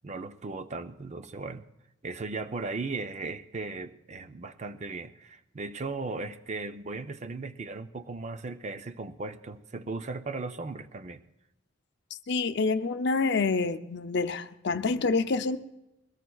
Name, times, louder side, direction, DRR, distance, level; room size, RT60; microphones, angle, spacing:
voice 1, 0.0-1.7 2.0-11.2, right 3 dB, 35° right, 0.5 m, -37 dB
voice 2, 12.3-15.6, left 4 dB, 60° left, 0.6 m, -27 dB
21.5 x 18.0 x 2.3 m
head